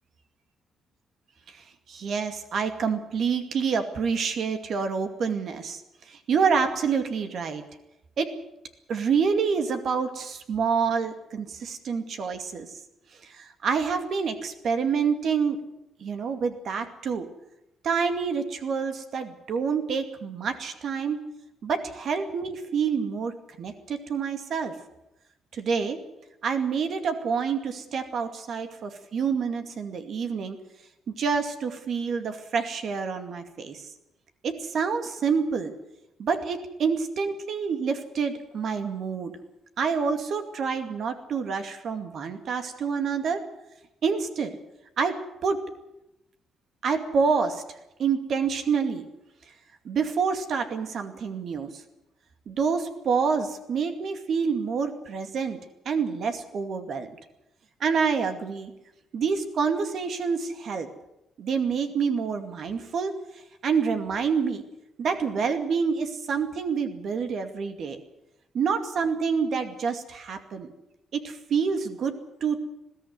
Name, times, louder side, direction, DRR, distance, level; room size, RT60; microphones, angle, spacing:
voice 1, 1.9-5.8 6.1-7.6 8.2-8.4 8.9-12.7 13.2-15.6 16.0-17.3 17.8-21.2 21.6-23.3 23.6-24.8 25.5-26.0 26.4-30.6 31.1-33.8 34.4-35.7 36.2-39.4 39.8-43.4 44.0-44.6 45.0-45.6 46.8-47.6 48.0-49.1 49.8-51.7 52.5-55.6 55.9-57.1 57.8-58.7 59.1-60.9 61.4-63.1 63.6-64.6 65.0-68.0 68.5-70.7 71.1-72.6, right 5 dB, 60° right, 7 dB, 2.3 m, -27 dB
21.0 x 14.5 x 9.6 m, 0.89 s
cardioid pair, 90°, 0 cm